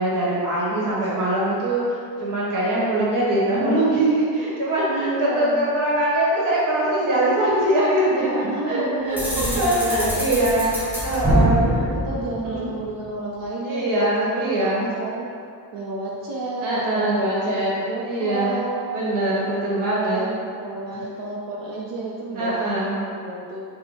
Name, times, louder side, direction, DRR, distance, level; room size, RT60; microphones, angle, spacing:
voice 1, 0.0-5.1 5.4-10.6 11.0-11.6 12.4-12.7 13.6-14.9 16.6-17.7 18.0-18.5 18.9-20.2 22.4-22.9, right 1 dB, 50° right, -6 dB, 1.0 m, -22 dB
voice 2, 0.7-1.3 3.0-3.7 4.9-5.6 8.5-10.3 10.5-10.8 11.4-19.0 19.5-22.7 23.0-23.6, right 2 dB, 90° right, -4 dB, 0.6 m, -31 dB
Prison door closing, 9.2-13.0, right 1 dB, 5° right, 0.4 m, -24 dB
4.5 x 2.1 x 2.8 m, 2.3 s
cardioid pair, 160°, 42 cm